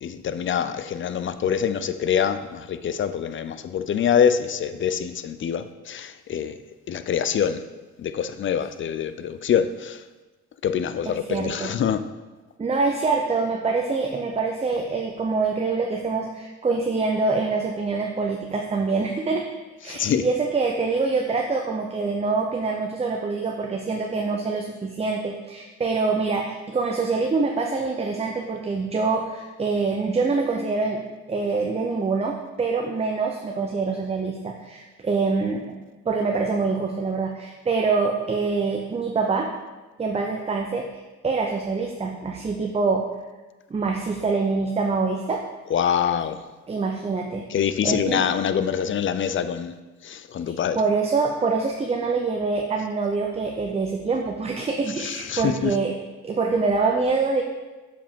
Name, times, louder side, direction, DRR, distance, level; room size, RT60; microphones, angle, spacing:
voice 1, 0.0-6.6 6.9-7.6 8.0-10.0 10.6-12.0 19.8-20.2 45.7-46.4 47.5-49.7 50.0-50.8 55.0-55.8, left 8 dB, 40° left, 12 dB, 0.4 m, -25 dB
voice 2, 11.1-11.7 12.6-19.5 19.8-35.8 36.1-39.5 40.0-43.0 43.7-45.4 46.7-48.3 50.5-55.9 56.2-57.4, right 4 dB, 20° right, 2 dB, 0.6 m, -25 dB
7.1 x 4.9 x 3.6 m, 1.2 s
cardioid pair, 90°, 30 cm